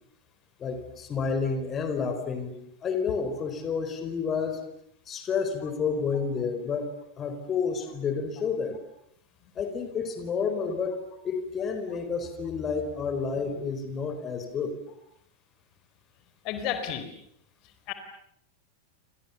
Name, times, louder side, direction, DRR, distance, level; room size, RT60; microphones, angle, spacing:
voice 1, 0.6-2.5 2.8-4.6 5.1-6.9 7.2-8.8 9.6-14.7, left 5 dB, 25° left, 8 dB, 4.3 m, -30 dB
voice 2, 16.4-17.0 17.9-18.0, left 9 dB, 40° left, 9 dB, 4.4 m, -31 dB
29.5 x 28.0 x 7.1 m, 0.72 s
figure-of-eight pair, 90°, 0 cm